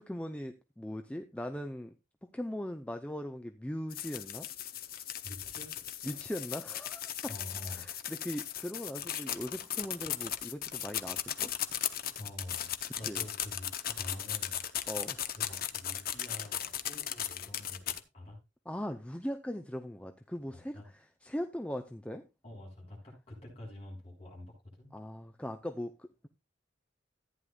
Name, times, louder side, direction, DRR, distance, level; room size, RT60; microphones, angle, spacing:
voice 1, 0.0-1.9 2.3-4.5 6.0-7.1 7.7-11.5 13.1-13.2 14.9-15.3 18.7-20.8 21.2-22.2 24.9-26.3, equal, 5° left, 0.5 m, -39 dB
sound 1, 3.9-18.0, left 10 dB, 50° left, 0.9 m, -37 dB
voice 2, 5.2-5.8 7.3-7.9 12.2-14.6 15.3-18.4 20.5-20.9 22.4-24.9, left 1 dB, 30° left, 6.7 m, -47 dB
14.5 x 9.7 x 2.4 m
head